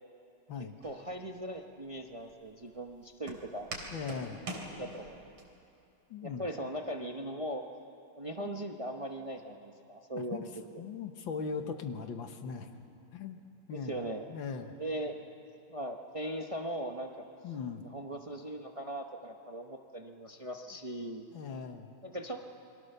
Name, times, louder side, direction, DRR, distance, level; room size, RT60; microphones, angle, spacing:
voice 1, 0.8-3.7 4.8-5.3 6.2-7.6 8.2-10.5 13.7-14.3 14.8-15.2 15.7-17.1 17.8-21.2 22.0-22.5, right 1 dB, 50° right, 3 dB, 0.4 m, -39 dB
Walk footsteps, 0.8-5.4, right 2 dB, 70° right, 3.9 m, -45 dB
voice 2, 3.9-4.4 6.1-6.5 8.4-8.6 10.1-10.5 10.8-12.7 13.1-13.4 13.7-14.8 17.4-17.8 21.3-22.0, left 5 dB, 65° left, 7 dB, 1.9 m, -39 dB
29.0 x 22.5 x 6.8 m, 2.7 s
omnidirectional pair, 2.4 m